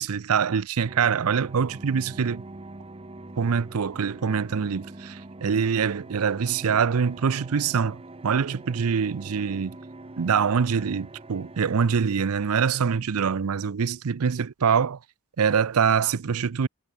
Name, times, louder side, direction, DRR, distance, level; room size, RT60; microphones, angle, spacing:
voice 1, 0.0-2.4 3.4-9.8 10.2-15.0 15.4-16.7, right 6 dB, 70° right, 0.5 m, -24 dB
sound 1, 0.9-11.8, right 2 dB, 25° right, 1.0 m, -44 dB
head